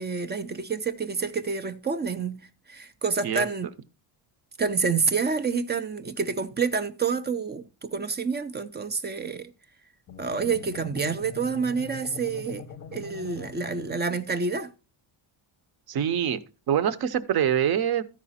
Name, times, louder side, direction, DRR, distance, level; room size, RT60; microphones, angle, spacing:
voice 1, 0.0-2.4 2.7-3.7 4.6-9.5 10.2-12.6 12.9-14.7, right 5 dB, 25° right, 0.4 m, -28 dB
sound 1, 10.1-14.4, left 6 dB, 30° left, 0.7 m, -42 dB
voice 2, 15.9-16.4 16.7-18.0, right 9 dB, 50° right, 0.7 m, -24 dB
13.5 x 5.0 x 4.1 m
cardioid pair, 175°, 50 cm